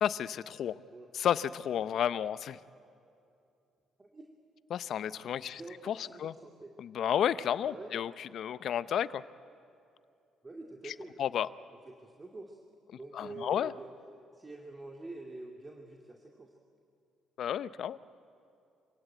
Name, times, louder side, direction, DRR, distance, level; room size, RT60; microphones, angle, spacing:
voice 1, 0.0-0.8 1.1-2.6 4.7-6.3 6.8-9.2 11.2-11.5 13.1-13.7 17.4-18.0, left 9 dB, 65° left, 16 dB, 0.7 m, -32 dB
voice 2, 5.4-6.7 7.6-7.9 10.4-11.2 11.9-12.6 12.9-13.9 14.3-16.5, right 2 dB, 25° right, 1 dB, 2.3 m, -46 dB
26.5 x 16.5 x 9.1 m, 2.6 s
supercardioid pair, 70°, 0 cm